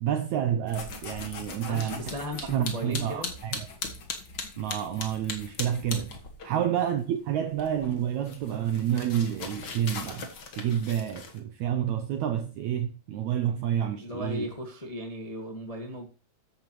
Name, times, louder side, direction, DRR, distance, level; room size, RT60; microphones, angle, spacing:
voice 1, 0.0-2.0 2.5-3.7 4.6-6.1 6.4-10.3 10.6-14.5, right 10 dB, 75° right, 1.7 m, -29 dB
sound 1, 0.7-6.5 6.8-11.4, left 4 dB, 50° left, 1.3 m, -39 dB
voice 2, 1.6-3.3 6.5-6.8 14.0-16.1, equal, 30° left, 0.7 m, -36 dB
13.5 x 10.0 x 3.2 m
omnidirectional pair, 4.1 m